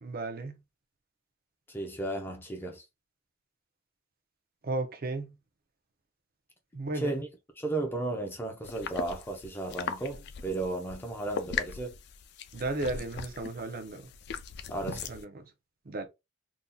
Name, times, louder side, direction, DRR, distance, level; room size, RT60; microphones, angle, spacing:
voice 1, 0.0-0.6 4.6-5.3 6.7-7.1 12.5-14.1 14.9-15.4 15.9-16.1, right 2 dB, 50° right, 0.6 m, -34 dB
voice 2, 1.7-2.8 6.9-7.3 7.6-11.9 14.7-15.1, right 2 dB, 10° left, 0.7 m, -34 dB
sound 1, 8.6-15.2, left 6 dB, 55° left, 0.4 m, -39 dB
3.7 x 2.8 x 2.3 m
head